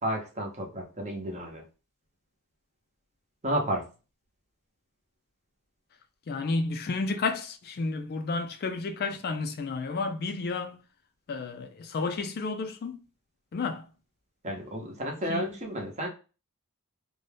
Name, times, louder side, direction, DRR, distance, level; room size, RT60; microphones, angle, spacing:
voice 1, 0.0-1.6 3.4-3.9 14.4-16.1, right 1 dB, 30° right, 0.7 m, -32 dB
voice 2, 6.3-10.8 11.3-13.0 13.5-13.9 15.3-15.5, left 3 dB, 45° left, 0.3 m, -31 dB
2.7 x 2.2 x 3.2 m
head